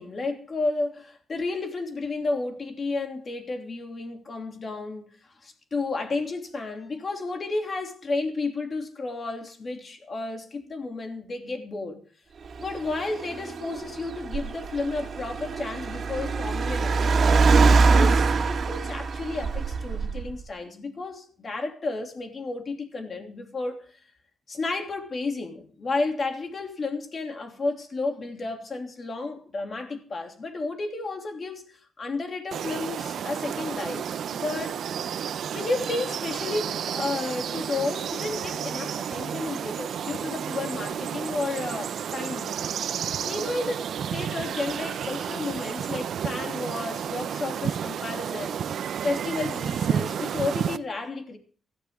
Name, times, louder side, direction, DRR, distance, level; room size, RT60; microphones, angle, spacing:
voice 1, 0.0-12.0 12.6-17.3 17.8-24.0 24.5-34.8 35.5-42.6 43.2-48.8 49.0-51.4, left 3 dB, 40° left, 3.0 m, -32 dB
Car, 12.5-20.4, right 4 dB, 50° right, 2.1 m, -23 dB
sound 1, 32.5-50.8, right 8 dB, 70° right, 0.7 m, -31 dB
16.5 x 14.0 x 3.8 m
cardioid pair, 105°, 0 cm